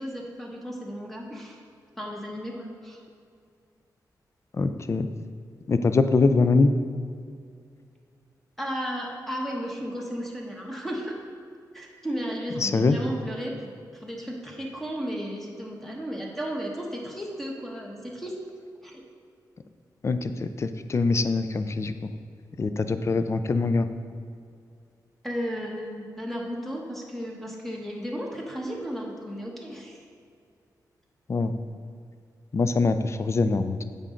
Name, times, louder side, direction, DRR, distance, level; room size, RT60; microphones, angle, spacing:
voice 1, 0.0-1.6 2.0-3.0 8.6-11.2 11.7-13.5 14.0-18.4 18.8-19.0 25.2-30.0, equal, 5° left, -2 dB, 1.2 m, -34 dB
voice 2, 4.5-5.1 5.7-6.7 12.6-13.0 20.0-22.1 22.6-23.9 31.3-31.5 32.5-33.8, left 3 dB, 40° left, 10 dB, 0.4 m, -23 dB
8.2 x 5.2 x 3.8 m, 2.3 s
cardioid pair, 80°, 7 cm